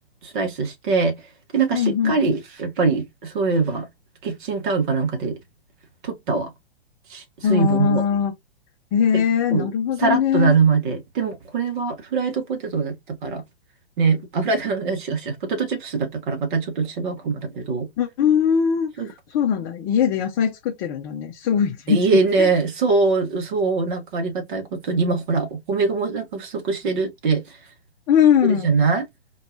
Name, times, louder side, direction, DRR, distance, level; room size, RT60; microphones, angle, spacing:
voice 1, 0.2-1.2 1.5-3.9 4.2-5.4 6.0-6.5 7.1-8.0 9.1-9.2 9.5-9.7 10.0-13.4 14.0-17.9 19.0-19.1 21.9-27.6 28.4-29.0, right 4 dB, 45° right, 1.8 m, -23 dB
voice 2, 1.7-2.2 7.4-8.3 8.9-10.5 18.0-18.9 19.3-22.0 22.4-22.5 28.1-28.7, left 8 dB, 25° left, 0.7 m, -20 dB
4.5 x 2.9 x 2.6 m
figure-of-eight pair, 120°, 34 cm